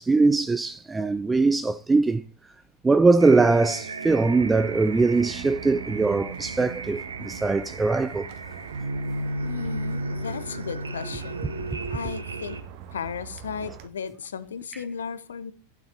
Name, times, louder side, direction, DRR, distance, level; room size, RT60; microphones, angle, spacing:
voice 1, 0.0-2.2 2.8-8.3, right 3 dB, 10° right, 0.4 m, -21 dB
sound 1, 3.2-12.6, right 2 dB, 75° right, 1.1 m, -34 dB
sound 2, 4.1-13.9, right 9 dB, 45° right, 1.1 m, -44 dB
voice 2, 9.4-11.4 11.9-12.6 12.9-15.5, left 6 dB, 65° left, 0.9 m, -35 dB
12.0 x 9.3 x 3.5 m
figure-of-eight pair, 90°, 0 cm